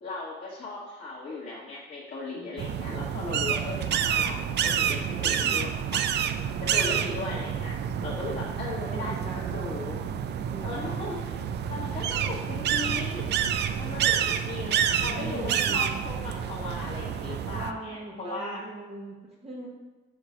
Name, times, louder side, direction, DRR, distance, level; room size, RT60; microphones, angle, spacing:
voice 1, 0.0-6.0 6.7-10.0 10.6-11.4 11.7-13.3 13.8-14.7 15.0-18.6, left 3 dB, 45° left, -7 dB, 1.2 m, -37 dB
voice 2, 2.4-2.9 8.8-9.6 10.5-10.9 14.6-14.8 15.1-16.1 17.5-19.2 19.4-19.7, right 2 dB, 30° right, -4 dB, 1.0 m, -40 dB
sound 1, 2.6-17.7, right 8 dB, 60° right, 0.4 m, -28 dB
4.7 x 4.4 x 4.9 m, 1.2 s
cardioid pair, 90°, 20 cm